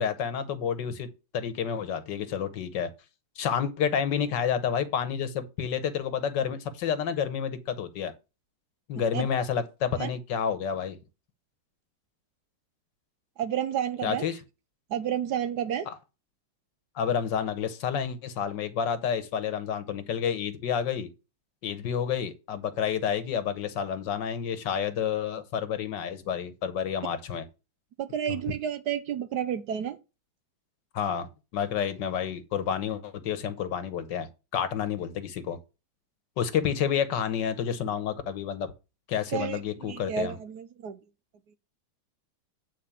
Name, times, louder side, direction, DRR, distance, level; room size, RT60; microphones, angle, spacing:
voice 1, 0.0-2.9 3.4-8.1 8.9-11.0 14.0-14.4 15.9-16.0 16.9-21.1 21.6-27.4 28.3-28.4 30.9-35.6 36.4-38.7 39.1-40.4, left 8 dB, 70° left, 1.6 m, -29 dB
voice 2, 13.4-14.3 14.9-15.9 28.0-30.0 39.3-41.0, right 9 dB, 65° right, 1.2 m, -31 dB
9.0 x 4.2 x 7.1 m
omnidirectional pair, 2.1 m